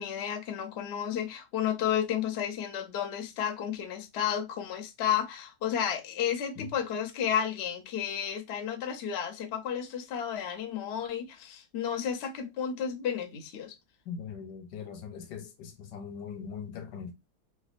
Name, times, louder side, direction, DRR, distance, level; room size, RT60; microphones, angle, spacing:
voice 1, 0.0-13.8, left 9 dB, 60° left, 0.6 m, -32 dB
voice 2, 14.1-17.1, left 6 dB, 85° left, 1.3 m, -41 dB
3.3 x 2.2 x 2.4 m
omnidirectional pair, 1.8 m